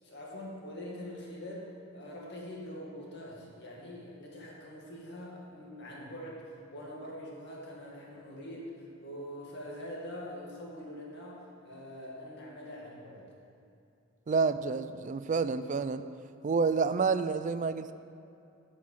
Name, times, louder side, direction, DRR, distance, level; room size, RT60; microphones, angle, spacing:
voice 1, 0.0-13.3, equal, 55° left, -3 dB, 2.1 m, -44 dB
voice 2, 14.3-16.0 16.4-17.9, right 4 dB, 40° right, 12 dB, 0.4 m, -29 dB
9.7 x 5.8 x 7.3 m, 2.6 s
head